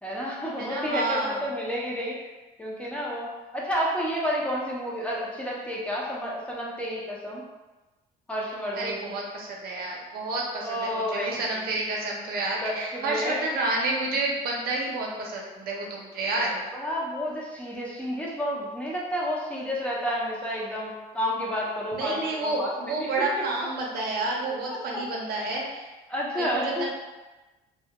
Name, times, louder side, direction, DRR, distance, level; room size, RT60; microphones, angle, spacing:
voice 1, 0.0-2.2 2.6-7.4 8.3-9.2 10.6-11.7 12.6-13.4 16.7-22.7 23.0-23.1 23.3-23.4 24.7-24.8 25.5-25.6 26.1-26.9, equal, 5° left, -4 dB, 0.5 m, -30 dB
voice 2, 0.6-1.4 8.7-16.6 21.9-25.9 26.3-26.9, right 2 dB, 65° right, -1 dB, 0.6 m, -30 dB
2.2 x 2.1 x 2.8 m, 1.1 s
cardioid pair, 110°, 17 cm